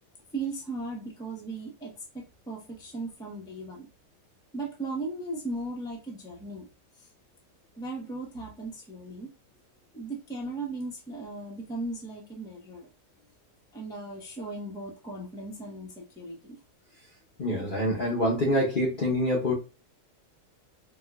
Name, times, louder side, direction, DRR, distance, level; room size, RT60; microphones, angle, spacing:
voice 1, 0.3-3.9 4.5-6.7 7.8-9.3 9.9-12.9 13.7-16.6, right 2 dB, 5° left, -2 dB, 0.7 m, -37 dB
voice 2, 17.4-19.5, left 1 dB, 40° left, -2 dB, 0.9 m, -26 dB
4.4 x 2.4 x 2.2 m, 0.29 s
omnidirectional pair, 1.5 m